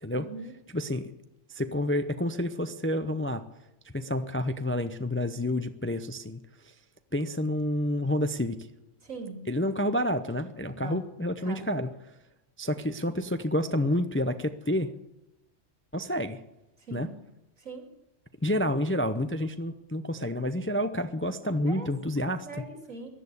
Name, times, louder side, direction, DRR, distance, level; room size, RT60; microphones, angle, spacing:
voice 1, 0.1-0.5 9.0-9.4 10.8-11.0 11.4-11.7 16.9-17.1 17.6-17.8 21.4-21.9 22.2-23.1, right 3 dB, 90° right, 4 dB, 2.9 m, -41 dB
voice 2, 0.7-1.1 1.5-3.4 3.9-6.4 7.1-8.6 9.5-11.9 12.6-14.9 15.9-16.4 16.9-17.1 18.4-22.5, left 1 dB, 15° left, 10 dB, 0.4 m, -29 dB
15.0 x 11.0 x 8.2 m, 0.92 s
omnidirectional pair, 1.3 m